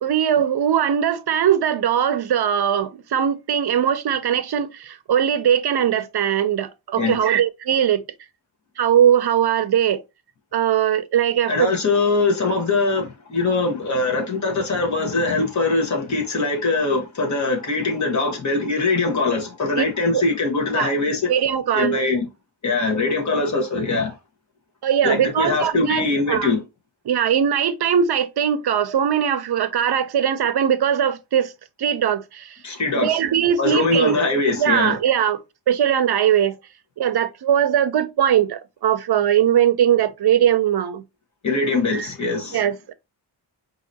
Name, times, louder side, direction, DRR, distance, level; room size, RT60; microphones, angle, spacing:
voice 1, 0.0-8.0 8.8-10.0 10.5-11.7 19.8-19.9 20.1-20.2 20.7-20.9 21.3-22.0 24.8-26.5 27.1-31.5 31.8-32.6 33.0-34.3 34.6-35.4 35.7-36.6 37.0-41.0 41.9-42.1 42.5-42.9, right 9 dB, 65° right, 0.5 m, -20 dB
voice 2, 11.5-21.3 21.7-22.3 22.6-24.1 25.0-26.6 32.6-33.2 33.6-35.0 41.4-42.6, left 3 dB, 40° left, 1.3 m, -22 dB
4.7 x 2.8 x 2.7 m
wide cardioid pair, 175°, 43 cm